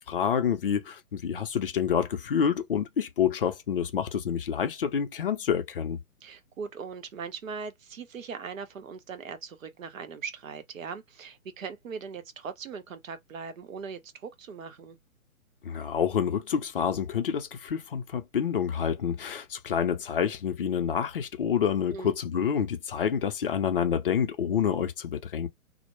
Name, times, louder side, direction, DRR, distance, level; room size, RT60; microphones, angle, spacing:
voice 1, 0.1-6.0 15.6-25.5, left 8 dB, 40° left, 0.5 m, -28 dB
voice 2, 6.2-15.0 21.9-22.1, right 5 dB, 65° right, 0.7 m, -40 dB
2.1 x 2.1 x 2.8 m
figure-of-eight pair, 135°, 43 cm